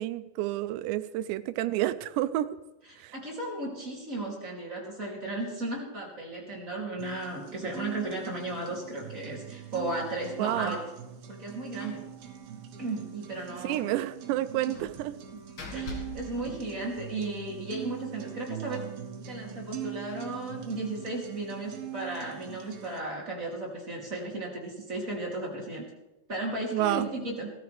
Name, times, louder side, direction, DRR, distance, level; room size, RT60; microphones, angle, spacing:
voice 1, 0.0-2.5 3.0-3.1 10.4-10.8 13.6-15.1 26.7-27.1, right 14 dB, 90° right, 12 dB, 2.8 m, -29 dB
voice 2, 2.9-10.8 11.3-12.0 12.8-13.9 14.7-14.8 15.7-18.8 19.3-25.8 26.3-27.5, right 2 dB, 25° right, -3 dB, 2.4 m, -35 dB
sound 1, 7.0-23.0, right 11 dB, 65° right, 3.0 m, -42 dB
Slam, 11.8-12.1 12.4-12.5 12.8-13.0 14.7-17.3, left 3 dB, 55° left, 1.4 m, -44 dB
19.0 x 13.5 x 3.4 m, 0.98 s
omnidirectional pair, 4.9 m